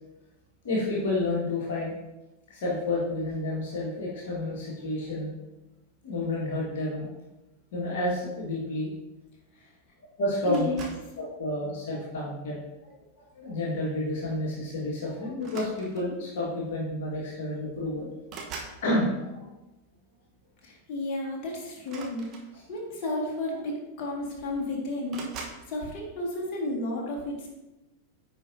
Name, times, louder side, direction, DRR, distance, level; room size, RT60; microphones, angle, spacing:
voice 1, 0.6-1.9 2.5-5.3 6.0-7.1 7.7-8.9 10.2-10.7 11.2-12.9 13.3-18.1 18.8-19.5, left 1 dB, 55° left, -5 dB, 1.6 m, -30 dB
voice 2, 10.5-10.9 20.6-22.3 22.7-27.5, left 1 dB, 40° left, -3 dB, 1.8 m, -32 dB
sound 1, 10.5-11.2 12.0-12.4 13.9-14.0 14.3-14.5 15.4-16.2 17.2-17.3 17.6-18.8 21.8-22.9 23.8-23.9 24.1-24.6 25.1-25.7, right 4 dB, 35° right, 1.1 m, -43 dB
9.6 x 4.7 x 2.7 m, 1.0 s
figure-of-eight pair, 90°, 0 cm